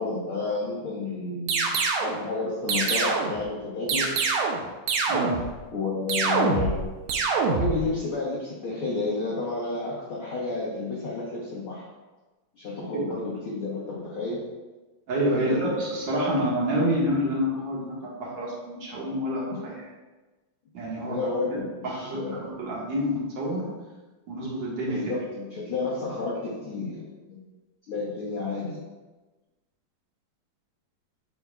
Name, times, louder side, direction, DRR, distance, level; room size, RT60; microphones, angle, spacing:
voice 1, 0.0-4.1 5.7-6.9 7.5-11.8 12.5-14.5 15.3-15.7 21.1-22.5 24.9-27.4 27.9-28.8, left 3 dB, 85° left, -5 dB, 1.1 m, -31 dB
sound 1, 1.5-2.2 2.7-3.4 3.9-4.6 4.9-5.5 6.1-6.8 7.1-7.8, right 4 dB, 80° right, 1.7 m, -25 dB
voice 2, 5.1-5.4 15.1-19.7 20.7-21.2 21.8-23.7 24.3-25.0, equal, 40° right, -6 dB, 1.8 m, -28 dB
8.1 x 6.9 x 2.4 m, 1.2 s
omnidirectional pair, 4.1 m